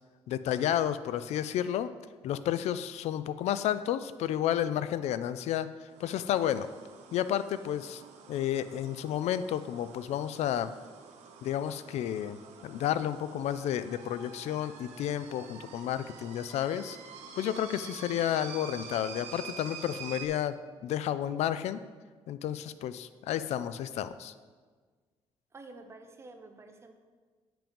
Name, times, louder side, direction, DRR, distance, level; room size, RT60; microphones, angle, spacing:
voice 1, 0.3-1.9 2.2-6.7 7.1-8.0 8.3-10.7 11.4-17.0 17.4-21.8 22.3-24.3, left 11 dB, 75° left, 13 dB, 0.4 m, -31 dB
sound 1, 5.9-20.3, right 6 dB, 85° right, 1.1 m, -48 dB
voice 2, 25.5-26.9, right 2 dB, 25° right, 5 dB, 0.8 m, -49 dB
8.5 x 6.0 x 5.2 m, 1.5 s
cardioid pair, 145°, 11 cm